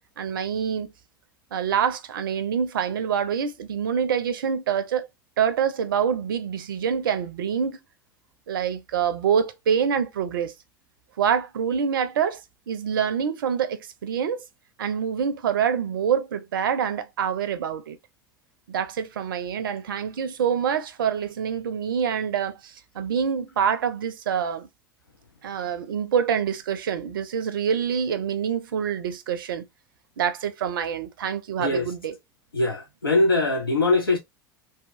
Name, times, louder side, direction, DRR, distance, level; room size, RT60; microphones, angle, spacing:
voice 1, 0.2-0.9 1.5-5.1 5.4-7.8 8.5-10.5 11.2-12.4 12.7-14.4 14.8-18.0 18.7-24.7 25.4-29.6 30.2-32.2, right 7 dB, 70° right, 0.4 m, -26 dB
voice 2, 32.5-34.2, left 2 dB, 90° left, 0.5 m, -22 dB
2.7 x 2.2 x 2.5 m
figure-of-eight pair, 80°, 12 cm